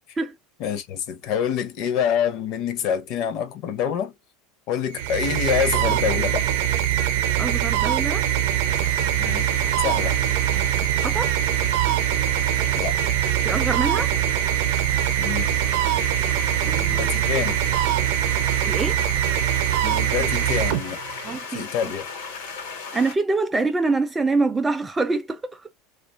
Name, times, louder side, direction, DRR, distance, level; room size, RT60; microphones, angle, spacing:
voice 1, 0.6-4.1 4.7-6.5 9.2-9.5 9.8-10.2 12.7-12.9 15.2-15.5 16.9-17.6 19.8-21.0 21.5-22.1, left 8 dB, 50° left, 0.6 m, -26 dB
sound 1, 4.9-21.4, right 11 dB, 70° right, 0.6 m, -23 dB
voice 2, 7.4-8.3 10.5-11.3 13.4-14.1 16.6-17.1 18.6-19.0 21.2-21.7 22.9-25.6, right 3 dB, 10° right, 0.3 m, -25 dB
sound 2, 8.7-23.1, left 5 dB, 80° left, 1.1 m, -37 dB
2.7 x 2.3 x 2.4 m
supercardioid pair, 150°, 0 cm